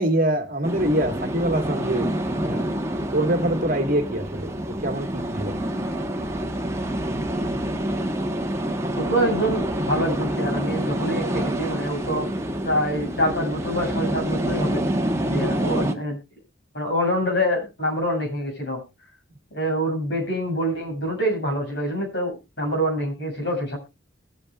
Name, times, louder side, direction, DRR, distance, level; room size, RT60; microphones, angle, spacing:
voice 1, 0.0-2.7 3.1-5.6, right 1 dB, 45° right, 1.7 m, -25 dB
sound 1, 0.6-15.9, right 1 dB, 15° right, 1.2 m, -27 dB
voice 2, 9.0-12.3 12.6-14.9 15.3-16.2 16.7-18.8 19.5-23.8, equal, 60° left, 6.8 m, -25 dB
21.0 x 8.7 x 2.4 m
head